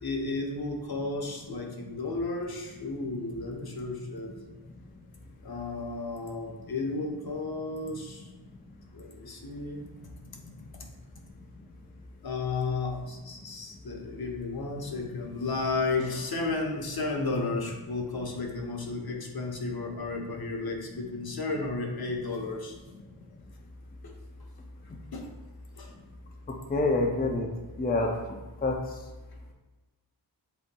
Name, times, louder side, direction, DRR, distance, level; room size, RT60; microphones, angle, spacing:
voice 1, 0.0-4.3 5.4-8.3 8.9-9.8 12.2-22.8 24.0-24.1 25.1-25.3 25.7-25.9, left 3 dB, 55° left, 2 dB, 0.9 m, -33 dB
voice 2, 26.7-27.5 27.8-28.1 28.6-28.8, left 2 dB, 20° left, 2 dB, 0.5 m, -26 dB
8.0 x 2.9 x 2.2 m, 1.2 s
wide cardioid pair, 70°, 44 cm